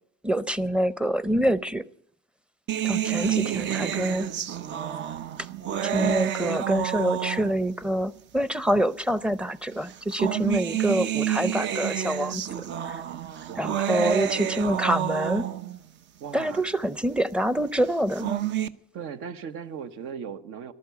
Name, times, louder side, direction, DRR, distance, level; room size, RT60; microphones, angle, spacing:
voice 1, 0.2-1.9 2.8-4.3 5.8-13.0 13.6-15.5 16.3-18.4, equal, 5° right, 0.6 m, -26 dB
sound 1, 2.7-7.8 8.7-8.8 9.9-15.8 17.9-18.7, right 11 dB, 60° right, 0.8 m, -29 dB
voice 2, 3.1-4.2 13.5-14.0 16.2-16.7 18.9-20.7, right 7 dB, 75° right, 1.2 m, -38 dB
14.0 x 12.0 x 8.3 m
cardioid pair, 110°, 21 cm